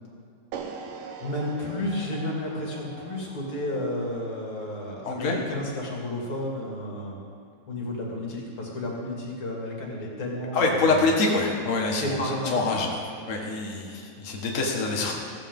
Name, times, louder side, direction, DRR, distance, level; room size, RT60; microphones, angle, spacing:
sound 1, 0.5-6.7, right 5 dB, 75° right, 2.4 m, -43 dB
voice 1, 1.2-7.2 7.7-11.1 11.9-12.7, left 1 dB, 40° left, -3 dB, 3.2 m, -32 dB
voice 2, 5.0-5.4 10.5-12.2 12.4-13.0 13.3-15.1, left 3 dB, 80° left, -1 dB, 0.7 m, -25 dB
16.0 x 14.5 x 3.7 m, 2.3 s
omnidirectional pair, 4.0 m